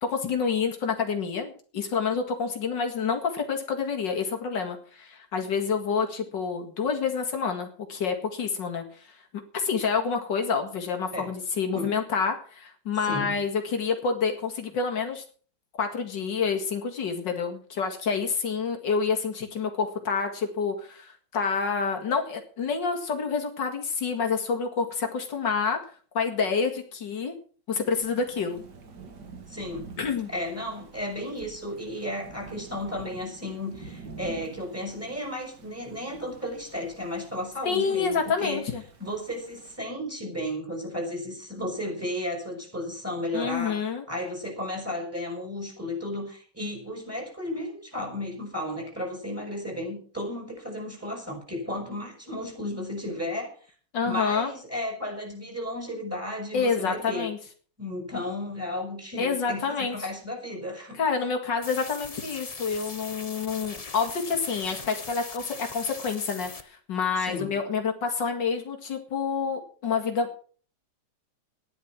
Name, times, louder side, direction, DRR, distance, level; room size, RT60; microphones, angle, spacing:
voice 1, 0.0-8.8 9.5-15.2 15.8-25.8 26.1-27.3 27.7-28.6 30.0-30.3 37.6-38.8 43.3-44.0 53.9-54.5 56.5-57.4 59.2-60.0 60.9-70.4, left 5 dB, 85° left, 3 dB, 2.7 m, -28 dB
voice 2, 13.0-13.4 29.5-29.9 30.3-38.6 39.0-53.5 54.0-57.3 57.8-61.0 67.2-67.6, left 1 dB, 5° right, 1 dB, 6.1 m, -34 dB
Thunder / Rain, 28.0-39.8, right 4 dB, 70° right, 2.5 m, -47 dB
sound 1, 61.6-66.6, left 4 dB, 25° left, 0.9 m, -40 dB
14.0 x 10.5 x 6.1 m, 0.43 s
omnidirectional pair, 1.9 m